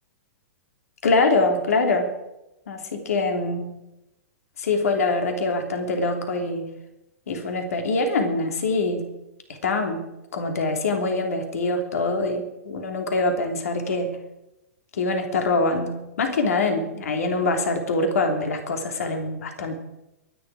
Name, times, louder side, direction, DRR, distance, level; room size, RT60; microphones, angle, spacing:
voice 1, 1.0-2.1 2.7-3.8 4.6-6.8 7.3-9.2 9.5-14.2 14.9-19.8, left 3 dB, 70° left, 5 dB, 2.9 m, -24 dB
23.0 x 10.0 x 4.9 m, 0.92 s
hypercardioid pair, 115°, 8 cm